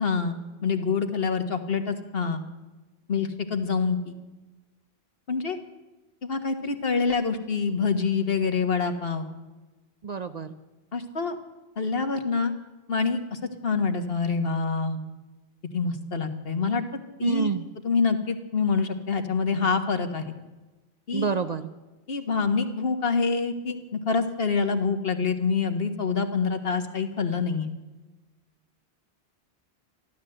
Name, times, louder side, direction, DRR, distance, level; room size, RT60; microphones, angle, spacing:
voice 1, 0.0-2.4 3.1-4.1 5.3-5.6 6.2-9.2 10.9-11.3 11.8-12.5 12.9-15.0 15.7-16.8 17.2-17.5 17.8-20.3 21.1-21.3 22.1-27.7, left 5 dB, 65° left, 7 dB, 1.6 m, -26 dB
voice 2, 10.0-10.6 17.2-17.7 21.1-21.6, right 5 dB, 45° right, 10 dB, 0.7 m, -27 dB
14.0 x 13.0 x 7.7 m, 1.1 s
omnidirectional pair, 1.1 m